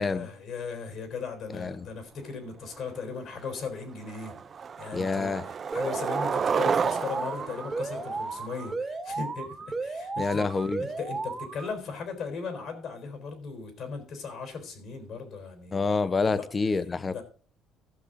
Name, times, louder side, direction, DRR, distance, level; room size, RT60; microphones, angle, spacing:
voice 1, 0.0-4.4 4.8-16.5 17.0-17.2, left 5 dB, 60° left, 3.9 m, -37 dB
voice 2, 1.5-1.9 4.9-5.4 10.2-10.8 15.7-17.2, left 4 dB, 25° left, 0.7 m, -27 dB
Skateboard, 3.0-3.1 3.4-3.8 4.1-8.7, right 6 dB, 40° right, 0.5 m, -31 dB
Alarm, 5.7-11.7, right 3 dB, 20° right, 1.4 m, -34 dB
14.5 x 6.6 x 3.8 m
cardioid pair, 110°, 0 cm